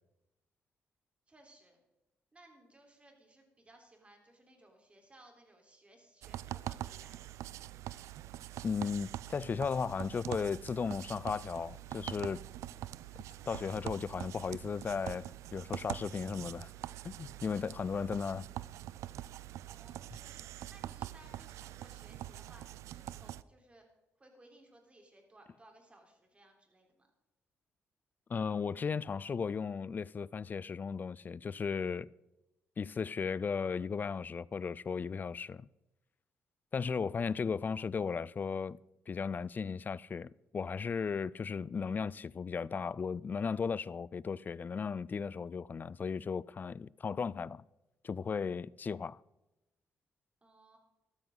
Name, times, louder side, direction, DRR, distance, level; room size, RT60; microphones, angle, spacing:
voice 1, 1.3-1.8 2.3-7.5 19.7-23.8 24.2-27.1 50.4-50.8, right 1 dB, 25° right, 3.9 m, -61 dB
sound 1, 6.2-23.4, right 13 dB, 80° right, 0.4 m, -44 dB
voice 2, 8.6-12.4 13.5-16.7 17.0-18.5 28.3-32.1 32.8-35.7 36.7-38.8 39.1-47.6 48.0-49.2, left 5 dB, 40° left, 0.4 m, -36 dB
14.0 x 12.5 x 3.9 m
cardioid pair, 75°, 5 cm